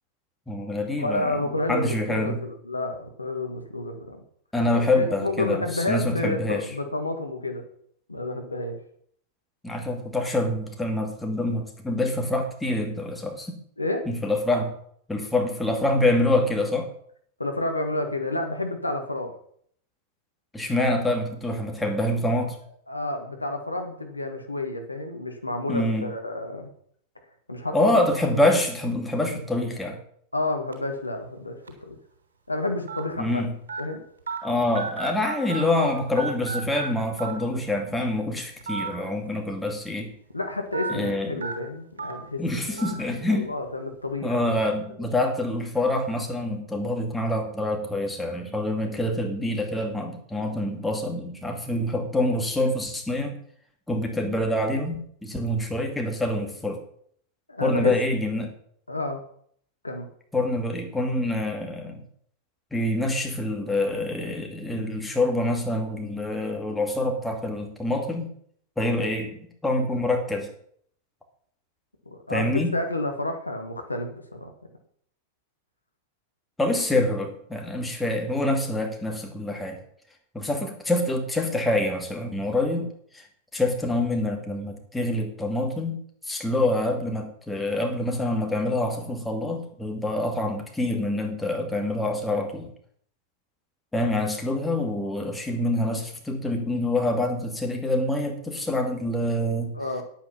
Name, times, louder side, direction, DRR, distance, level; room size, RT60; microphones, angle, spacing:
voice 1, 0.5-1.4 1.7-2.4 4.5-6.6 9.6-13.5 14.1-14.7 15.1-16.9 20.5-22.6 25.7-26.1 27.7-30.0 33.2-33.5 34.4-40.1 40.9-41.4 42.4-43.5 44.2-53.4 53.9-55.0 55.2-56.8 57.6-58.5 60.3-62.0 62.7-68.3 68.8-69.4 69.6-70.5 72.3-72.7 76.6-79.8 80.3-82.9 83.1-83.3 83.5-86.0 86.3-92.7 93.9-99.7, left 1 dB, 5° left, 2 dB, 2.4 m, -26 dB
voice 2, 1.0-4.2 4.9-7.6 8.1-8.7 13.8-14.1 17.4-19.3 22.9-26.7 27.5-27.9 30.3-32.0 32.5-33.4 33.8-34.0 40.3-42.8 43.3-44.6 57.5-57.9 58.9-59.2 59.8-60.1 72.1-74.5 82.6-82.9 99.7-100.0, left 2 dB, 85° left, 5 dB, 1.6 m, -30 dB
sound 1, 30.7-30.9 31.7-31.8 32.9-33.0 33.7-33.8 34.3-34.4 34.7-35.9 36.2-36.9 37.2-37.3 38.6-38.9 39.3-39.4 40.7-40.9 41.4-41.5 42.0-42.1 42.8-42.9, right 5 dB, 70° right, 3.3 m, -32 dB
10.0 x 8.8 x 5.7 m, 0.63 s
figure-of-eight pair, 90°, 0 cm